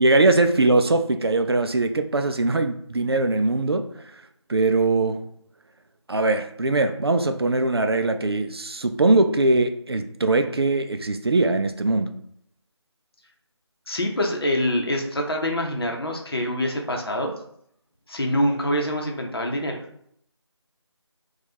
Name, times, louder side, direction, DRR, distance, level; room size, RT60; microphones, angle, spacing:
voice 1, 0.0-4.2 4.5-5.3 6.1-12.2, right 2 dB, 55° right, 0.4 m, -21 dB
voice 2, 13.9-17.3 18.1-19.8, left 1 dB, 55° left, 0.8 m, -25 dB
4.5 x 2.3 x 2.7 m
figure-of-eight pair, 170°, 15 cm